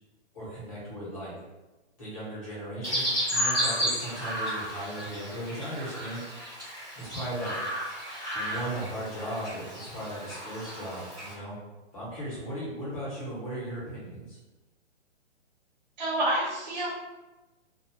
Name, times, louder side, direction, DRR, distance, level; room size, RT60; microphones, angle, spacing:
voice 1, 0.3-1.3 2.0-6.6 6.9-7.5 8.3-11.6 11.9-14.4, right 1 dB, 30° left, -8 dB, 1.0 m, -37 dB
Chirp tweet, 2.8-11.3, equal, 5° left, 0.7 m, -33 dB
voice 2, 16.0-16.9, right 1 dB, 40° right, -7 dB, 0.4 m, -28 dB
2.4 x 2.2 x 2.7 m, 1.1 s
hypercardioid pair, 175°, 35 cm